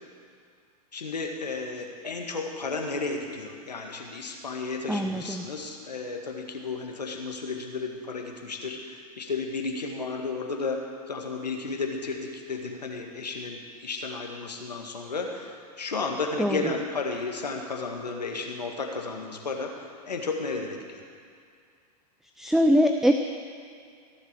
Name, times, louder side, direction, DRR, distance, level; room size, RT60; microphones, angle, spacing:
voice 1, 0.9-10.8 11.1-21.0, left 4 dB, 90° left, 2 dB, 1.9 m, -33 dB
voice 2, 4.9-5.5 16.4-16.6 22.4-23.1, equal, ahead, 6 dB, 0.5 m, -22 dB
16.5 x 7.5 x 7.5 m, 2.3 s
hypercardioid pair, 105°, 20 cm